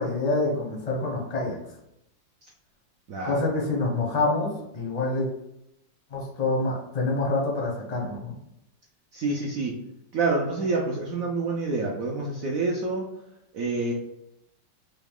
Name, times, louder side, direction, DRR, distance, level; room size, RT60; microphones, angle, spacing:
voice 1, 0.0-1.6 3.2-5.3 6.1-8.4, left 2 dB, 55° left, -2 dB, 0.4 m, -26 dB
voice 2, 3.1-3.4 9.1-9.7 10.1-13.1 13.5-13.9, right 3 dB, 75° right, -2 dB, 0.7 m, -27 dB
4.0 x 2.3 x 3.5 m, 0.80 s
omnidirectional pair, 2.1 m